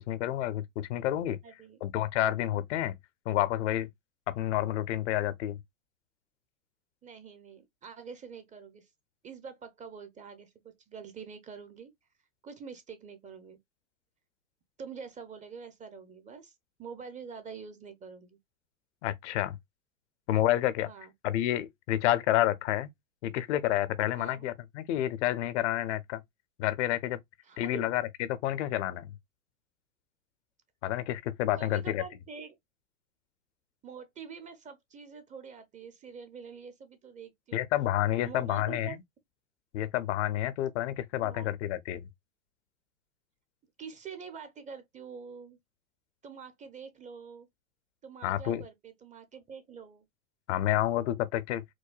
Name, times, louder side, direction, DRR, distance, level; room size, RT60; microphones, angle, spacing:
voice 1, 0.1-1.4 1.8-3.0 3.3-3.9 4.3-5.6 19.0-19.6 20.3-20.9 21.2-22.9 23.2-26.2 26.6-27.2 27.6-28.0 28.3-29.1 30.8-32.0 37.5-39.0 39.7-42.0 48.2-48.6 50.5-51.6, left 13 dB, 60° left, 0.6 m, -29 dB
voice 2, 1.4-1.8 7.0-8.9 9.2-11.9 12.4-13.6 14.8-18.4 20.9-21.1 24.2-24.5 27.4-27.9 31.6-32.6 33.8-37.7 38.2-39.0 41.2-41.5 43.8-45.6 46.2-47.5 48.0-50.0, right 6 dB, 20° right, 0.6 m, -46 dB
4.7 x 2.2 x 2.2 m
hypercardioid pair, 105°, 39 cm